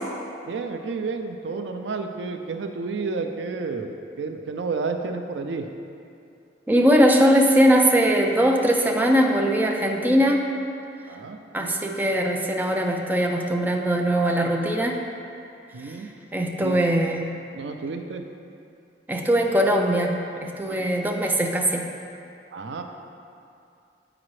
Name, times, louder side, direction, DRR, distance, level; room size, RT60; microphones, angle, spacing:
voice 1, 0.5-5.7 11.1-11.4 15.7-16.1 16.6-16.8 17.5-18.3 20.7-21.0 22.5-22.8, right 4 dB, 80° right, 5 dB, 0.5 m, -31 dB
voice 2, 6.7-10.5 11.5-15.0 16.3-17.4 19.1-21.9, equal, 10° right, 1 dB, 0.4 m, -21 dB
8.5 x 5.0 x 3.1 m, 2.6 s
head